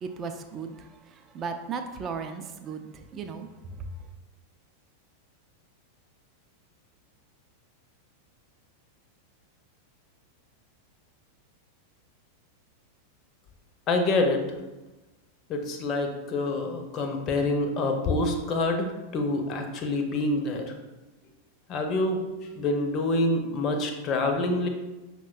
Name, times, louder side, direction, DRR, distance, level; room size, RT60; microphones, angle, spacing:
voice 1, 0.0-3.5 3.8-3.9, right 5 dB, 30° right, 6 dB, 0.3 m, -36 dB
voice 2, 13.9-14.4 15.5-20.7 21.7-22.2 22.6-24.7, left 2 dB, 35° left, 4 dB, 0.5 m, -26 dB
5.7 x 2.1 x 2.4 m, 1.1 s
figure-of-eight pair, 90°, 0 cm